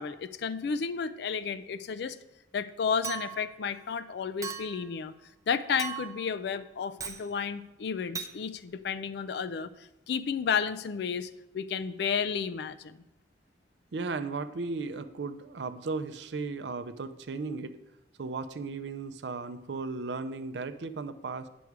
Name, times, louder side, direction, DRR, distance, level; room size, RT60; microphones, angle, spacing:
voice 1, 0.0-2.2 2.5-5.1 5.5-9.7 10.1-13.0, left 6 dB, 60° left, 12 dB, 0.4 m, -32 dB
Chink clink, 3.0-3.6 4.4-4.9 5.8-6.3 7.0-7.3 8.2-8.3, right 7 dB, 20° right, 0.5 m, -38 dB
voice 2, 13.9-17.7 18.2-21.5, right 4 dB, 65° right, 11 dB, 0.5 m, -35 dB
9.4 x 6.2 x 4.6 m, 0.91 s
head